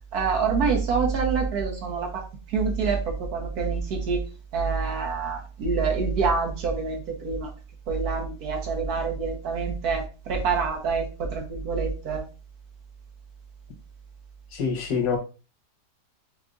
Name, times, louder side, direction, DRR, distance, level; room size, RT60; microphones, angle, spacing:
voice 1, 0.1-2.2 2.5-4.2 4.5-7.5 7.9-12.2, right 5 dB, 65° right, 1 dB, 1.5 m, -26 dB
voice 2, 14.5-15.2, left 6 dB, 80° left, 2 dB, 1.6 m, -25 dB
4.8 x 3.3 x 2.5 m, 0.33 s
omnidirectional pair, 1.8 m